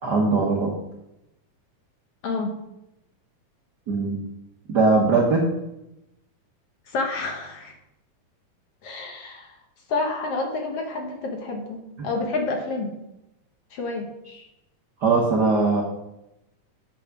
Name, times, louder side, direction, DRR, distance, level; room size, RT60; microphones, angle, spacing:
voice 1, 0.0-0.7 3.9-4.2 4.7-5.4 12.0-12.1 15.0-15.8, right 3 dB, 85° right, 0 dB, 0.9 m, -20 dB
voice 2, 2.2-2.6 6.9-7.7 8.8-9.6 9.9-13.0 13.7-14.1, left 3 dB, 60° left, 2 dB, 1.7 m, -29 dB
8.6 x 6.0 x 6.1 m, 0.89 s
omnidirectional pair, 3.7 m